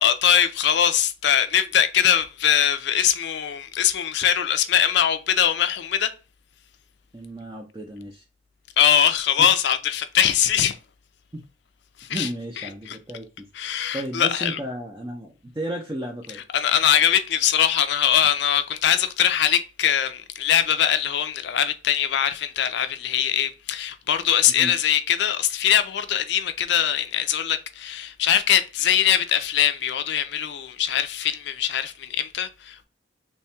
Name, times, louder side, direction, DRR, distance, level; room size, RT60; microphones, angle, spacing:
voice 1, 0.0-6.1 8.8-10.8 12.0-12.3 12.9-13.0 13.5-14.6 16.5-32.8, left 9 dB, 65° left, 0.4 m, -22 dB
voice 2, 7.1-8.2 9.4-9.5 11.3-11.4 12.1-13.5 13.9-16.4 24.5-24.7, right 1 dB, 20° right, 0.5 m, -33 dB
3.2 x 2.3 x 4.3 m
head